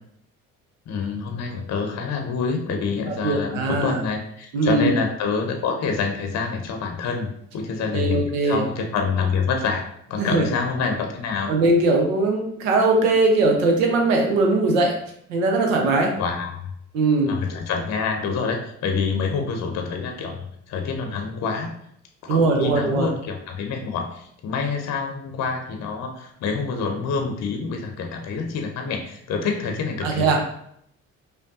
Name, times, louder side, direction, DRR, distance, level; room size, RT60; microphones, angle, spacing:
voice 1, 0.9-9.8 10.1-11.5 16.1-16.6 17.3-21.7 22.2-30.4, left 5 dB, 45° left, 4 dB, 0.7 m, -27 dB
voice 2, 3.2-4.0 4.5-4.9 7.9-8.6 10.2-10.5 11.5-14.9 15.3-16.1 16.9-17.3 22.3-23.1 30.0-30.4, right 2 dB, 75° right, 2 dB, 0.8 m, -20 dB
5.1 x 2.2 x 2.6 m, 0.70 s
figure-of-eight pair, 45°, 39 cm